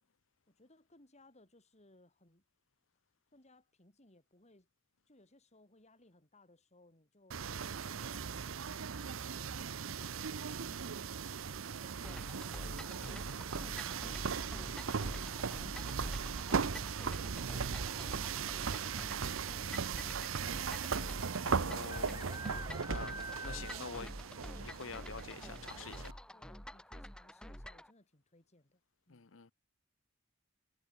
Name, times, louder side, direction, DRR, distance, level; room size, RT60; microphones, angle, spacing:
voice 1, 0.5-2.4 3.3-4.7 5.1-13.7 16.1-18.9 25.6-26.0 26.3-28.8 29.1-29.3, left 2 dB, 35° left, 4.3 m, -65 dB
sound 1, 7.3-26.1, right 6 dB, 85° right, 0.7 m, -38 dB
sound 2, 12.0-27.9, equal, 5° left, 1.0 m, -48 dB
sound 3, 14.3-14.8 16.6-17.0 17.3-17.4 17.6-18.1 18.9-19.0 19.2-19.3 20.8-20.9 21.9-24.2 24.5-24.6 25.1-25.2 25.7-25.8, right 3 dB, 15° right, 1.3 m, -47 dB
voice 2, 21.4-24.1 24.6-26.2 29.1-29.5, left 5 dB, 70° left, 0.8 m, -47 dB
head